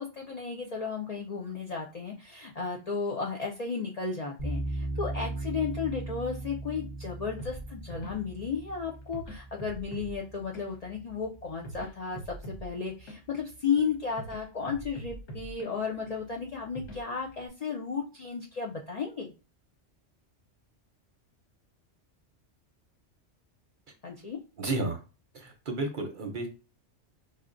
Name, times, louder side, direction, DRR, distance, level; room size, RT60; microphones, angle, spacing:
voice 1, 0.0-12.2 12.6-19.3 24.0-24.4, left 5 dB, 55° left, -1 dB, 0.4 m, -34 dB
sound 1, 4.4-11.5, right 2 dB, 35° left, 0.8 m, -38 dB
sound 2, 7.4-17.5, right 2 dB, 70° left, 1.3 m, -45 dB
voice 2, 24.6-25.0 25.3-26.5, right 2 dB, 55° right, 4 dB, 0.7 m, -32 dB
5.5 x 2.1 x 2.5 m, 0.32 s
omnidirectional pair, 1.2 m